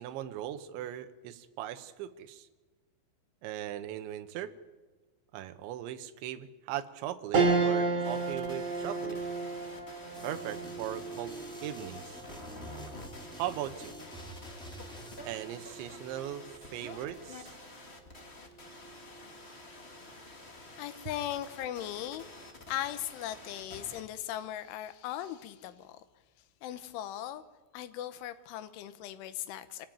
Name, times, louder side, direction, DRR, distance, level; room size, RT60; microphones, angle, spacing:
voice 1, 0.0-2.5 3.4-4.5 5.3-9.2 10.2-12.2 13.3-14.0 15.3-17.5, right 12 dB, 75° right, 10 dB, 3.3 m, -39 dB
sound 1, 7.3-16.9 17.4-17.5 18.8-19.3, right 4 dB, 45° right, 3.8 m, -34 dB
sound 2, 8.0-24.0, left 2 dB, 45° left, 0.7 m, -49 dB
sound 3, 10.1-15.2, equal, ahead, 1.5 m, -49 dB
voice 2, 20.8-22.3 22.7-26.0 26.6-27.4 27.7-29.9, left 12 dB, 80° left, 12 dB, 3.5 m, -38 dB
26.5 x 17.0 x 9.0 m, 1.3 s
omnidirectional pair, 5.5 m